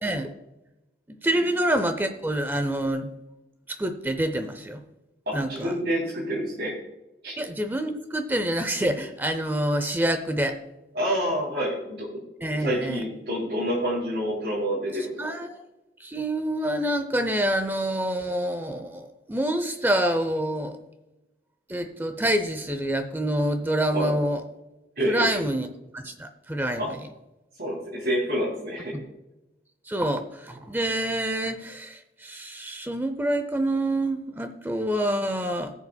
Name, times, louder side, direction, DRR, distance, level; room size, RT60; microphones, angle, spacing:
voice 1, 1.2-3.1 3.7-4.8 5.3-5.7 7.4-10.6 12.4-13.0 15.2-15.6 16.0-20.8 21.7-24.4 25.1-25.7 25.9-27.0 28.9-29.0 29.9-35.7, right 1 dB, 10° right, 8 dB, 0.6 m, -27 dB
voice 2, 5.3-6.8 7.2-7.4 10.9-12.1 12.6-15.1 23.9-24.1 25.0-25.3 26.8-26.9 27.6-29.0, equal, 65° right, -6 dB, 3.1 m, -28 dB
19.0 x 7.0 x 2.3 m, 0.97 s
head